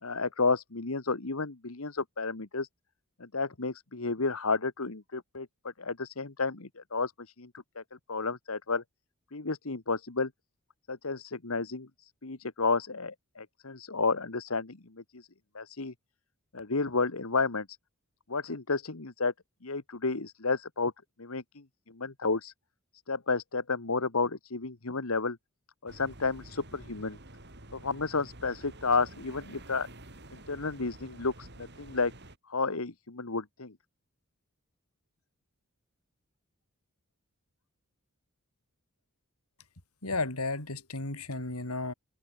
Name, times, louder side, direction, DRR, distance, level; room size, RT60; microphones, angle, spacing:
voice 1, 0.0-2.7 3.2-7.1 7.4-7.5 7.7-7.8 8.1-8.8 9.3-10.3 10.9-15.3 15.5-15.9 16.5-17.7 18.3-19.3 19.6-20.9 21.2-22.5 23.1-25.4 25.8-27.2 27.7-29.9 30.3-32.1 32.5-33.7, left 4 dB, 70° left, 1.5 m, -31 dB
sound 1, 25.9-32.4, right 1 dB, 50° right, 7.9 m, -49 dB
voice 2, 40.0-41.9, left 3 dB, 85° left, 4.2 m, -33 dB
head